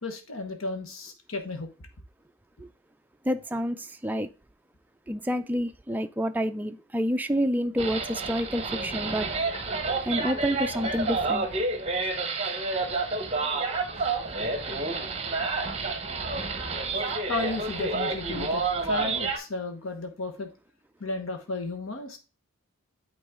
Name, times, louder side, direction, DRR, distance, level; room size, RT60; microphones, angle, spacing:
voice 1, 0.0-1.7 17.3-20.5 21.0-22.2, left 3 dB, 80° left, 1.2 m, -33 dB
voice 2, 3.3-4.3 5.1-9.3 10.1-11.5, equal, 10° right, 0.4 m, -28 dB
sound 1, 7.8-19.4, right 3 dB, 30° right, 1.0 m, -29 dB
8.8 x 4.0 x 3.6 m
head